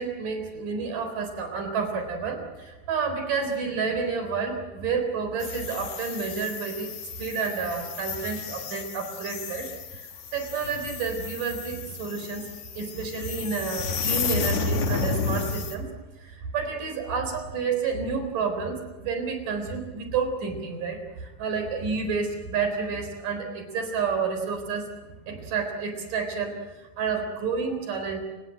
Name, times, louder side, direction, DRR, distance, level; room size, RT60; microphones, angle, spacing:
voice 1, 0.0-9.7 9.9-12.5 12.8-15.9 16.2-28.2, right 5 dB, 70° right, 6 dB, 5.5 m, -30 dB
sound 1, 5.4-15.7, left 5 dB, 55° left, 3.0 m, -32 dB
28.5 x 18.5 x 7.7 m, 1.2 s
omnidirectional pair, 4.0 m